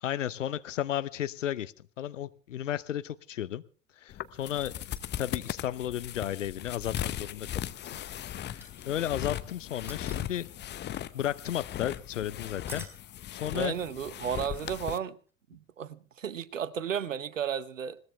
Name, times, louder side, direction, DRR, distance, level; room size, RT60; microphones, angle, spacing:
voice 1, 0.0-3.6 4.0-7.5 8.3-10.5 10.8-12.9 13.3-13.8, left 11 dB, 75° left, 0.8 m, -34 dB
sound 1, 4.1-15.0, left 11 dB, 25° left, 0.8 m, -38 dB
sound 2, 4.9-5.6 6.8-7.5 8.6-9.2 9.8-10.8 12.6-13.0 15.3-15.4, right 1 dB, 5° right, 4.3 m, -48 dB
voice 2, 13.5-15.2 15.5-18.0, right 8 dB, 80° right, 1.0 m, -33 dB
21.0 x 18.5 x 3.4 m
figure-of-eight pair, 75°, 38 cm